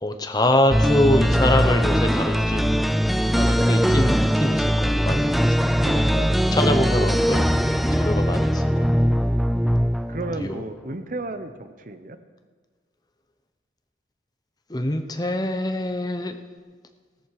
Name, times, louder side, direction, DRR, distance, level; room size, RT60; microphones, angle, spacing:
voice 1, 0.0-2.8 3.4-5.5 5.9-6.0 6.5-8.9 10.4-10.6 14.7-16.4, left 1 dB, 20° left, 7 dB, 0.8 m, -25 dB
sound 1, 0.7-10.5, equal, ahead, 0.3 m, -21 dB
voice 2, 5.7-6.3 10.1-12.2, right 2 dB, 45° right, 9 dB, 0.8 m, -34 dB
16.5 x 13.0 x 4.8 m, 1.5 s
head